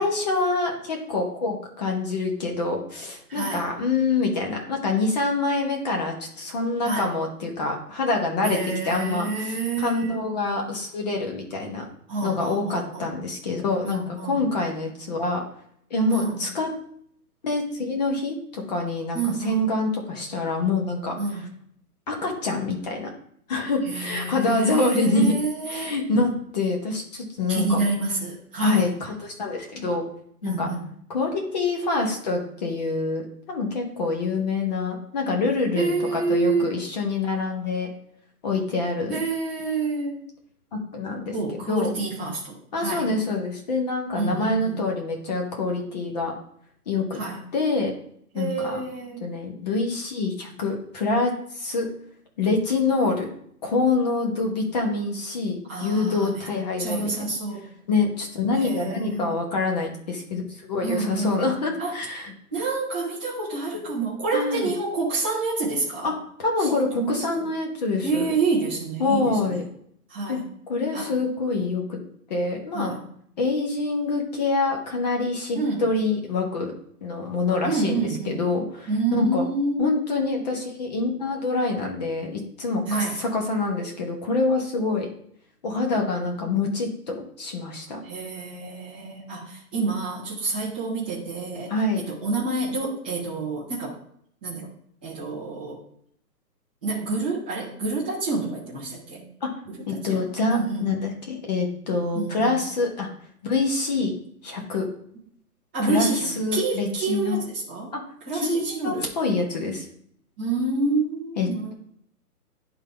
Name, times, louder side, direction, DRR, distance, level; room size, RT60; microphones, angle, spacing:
voice 1, 0.0-8.6 8.8-11.9 12.2-15.4 15.9-16.7 17.4-21.2 22.1-23.1 23.5-25.3 25.7-27.8 28.6-30.0 30.4-30.7 31.1-33.2 33.5-37.9 38.4-39.2 40.7-41.9 42.7-46.3 46.9-47.2 47.5-47.9 48.3-48.8 49.2-51.9 52.4-53.3 53.6-57.3 57.9-62.3 64.3-64.7 66.0-66.1 66.4-68.3 69.0-69.6 70.3-70.4 70.7-72.0 72.3-72.9 73.4-76.7 77.0-79.4 79.8-85.1 85.6-88.0 91.7-92.0 99.4-99.5 99.9-103.1 103.4-104.1 104.4-104.8 105.8-107.4 107.9-108.0 108.3-108.6 108.8-109.8 111.4-111.7, left 3 dB, 25° left, 1 dB, 1.1 m, -26 dB
voice 2, 3.3-3.7 6.8-7.1 8.4-10.2 12.1-13.1 13.8-14.4 16.1-16.4 19.1-19.7 21.2-21.5 23.8-26.0 27.5-28.9 30.4-30.9 35.7-36.8 39.1-40.2 41.3-43.1 44.1-44.8 47.1-47.4 48.3-49.2 55.7-56.4 56.8-57.7 58.6-59.4 60.8-61.9 62.5-66.1 66.6-67.4 68.0-69.6 70.1-70.4 70.9-71.1 72.7-73.1 75.5-75.9 77.6-78.5 78.9-80.0 82.9-83.2 88.0-94.0 94.4-94.7 95.0-95.8 96.8-99.3 99.7-100.9 102.1-102.6 105.7-107.9 108.2-109.1 110.4-111.7, right 3 dB, 5° right, -9 dB, 0.6 m, -28 dB
10.5 x 3.9 x 3.3 m, 0.66 s
hypercardioid pair, 160°, 47 cm